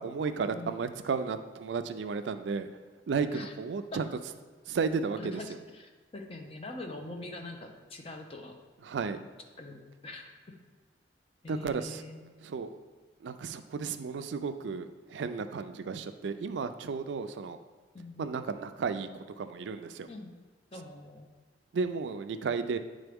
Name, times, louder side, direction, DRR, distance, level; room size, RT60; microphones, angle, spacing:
voice 1, 0.0-2.7 3.1-4.1 4.7-5.4 8.8-9.2 11.5-12.0 12.4-12.7 13.2-17.6 18.2-20.1 21.7-22.8, right 5 dB, 75° right, 9 dB, 0.4 m, -33 dB
voice 2, 5.2-8.6 9.6-10.6 11.4-12.2 17.9-18.4 20.1-20.4 20.7-21.3, left 2 dB, 30° left, 3 dB, 0.6 m, -43 dB
9.0 x 3.8 x 3.5 m, 1.4 s
head